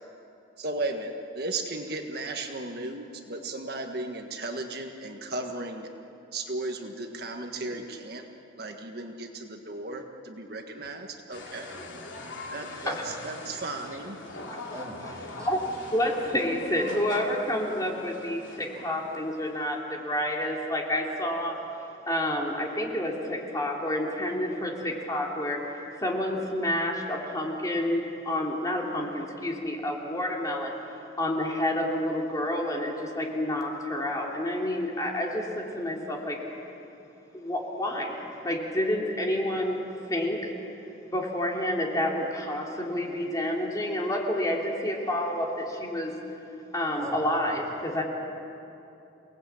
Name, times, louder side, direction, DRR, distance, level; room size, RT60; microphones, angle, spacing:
voice 1, 0.6-5.9 6.3-8.3 8.6-11.8 12.5-14.2 37.9-38.1, right 2 dB, 55° right, 3 dB, 1.6 m, -35 dB
sound 1, 11.3-19.8, left 2 dB, 80° left, 2.8 m, -42 dB
voice 2, 11.7-12.3 13.0-13.2 14.7-15.8 47.0-47.8, right 1 dB, 20° right, -2 dB, 3.3 m, -44 dB
voice 3, 12.6-13.0 14.5-14.6 15.4-21.6 22.1-25.6 26.0-30.7 31.2-36.4 37.3-39.8 40.1-40.5 41.1-46.1 46.7-48.0, left 1 dB, 20° left, -1 dB, 2.9 m, -29 dB
29.5 x 19.0 x 8.6 m, 2.8 s
head